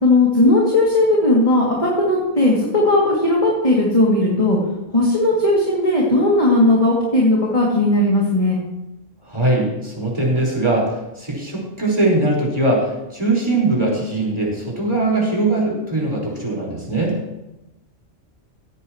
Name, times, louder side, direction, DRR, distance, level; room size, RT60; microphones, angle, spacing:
voice 1, 0.0-4.6 4.9-8.6, left 2 dB, 25° left, -4 dB, 2.8 m, -17 dB
voice 2, 9.2-17.1, right 2 dB, 20° right, -3 dB, 5.0 m, -21 dB
17.0 x 14.5 x 3.2 m, 0.97 s
omnidirectional pair, 1.4 m